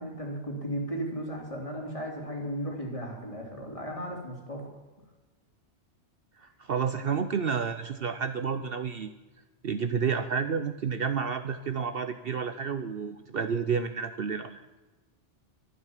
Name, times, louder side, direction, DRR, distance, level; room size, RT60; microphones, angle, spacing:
voice 1, 0.0-4.6, equal, 30° left, -1 dB, 3.6 m, -35 dB
voice 2, 6.4-9.1 9.6-14.6, right 6 dB, 55° right, 9 dB, 0.9 m, -30 dB
12.5 x 12.0 x 7.3 m, 1.2 s
omnidirectional pair, 1.2 m